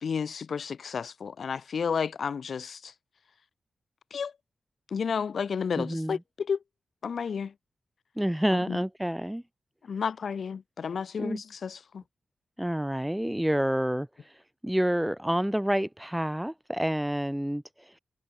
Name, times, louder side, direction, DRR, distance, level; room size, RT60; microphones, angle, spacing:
voice 1, 0.0-2.9 4.1-4.3 4.9-6.6 7.0-7.5 8.5-8.8 9.8-12.0, left 6 dB, 60° left, 0.8 m, -32 dB
voice 2, 5.8-6.2 8.2-9.4 11.2-11.4 12.6-14.1 14.6-17.6, equal, 5° right, 0.9 m, -28 dB
wide cardioid pair, 115°, 0 cm